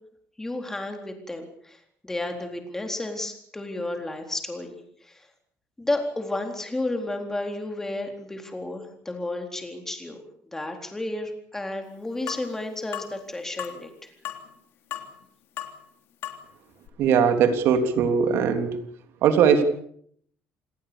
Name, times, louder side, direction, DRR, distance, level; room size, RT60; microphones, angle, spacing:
voice 1, 0.4-5.3 5.8-10.2 10.5-14.1, left 2 dB, 10° left, 4 dB, 4.0 m, -32 dB
sound 1, 12.3-12.5 12.9-13.1 13.6-13.8 14.2-14.5 14.9-15.2 15.6-15.7 16.2-16.4 16.9-17.0, left 12 dB, 60° left, 3.3 m, -34 dB
voice 2, 17.0-18.8 19.2-19.6, right 7 dB, 60° right, 7 dB, 3.4 m, -20 dB
28.0 x 19.0 x 7.0 m, 0.66 s
cardioid pair, 160°, 5 cm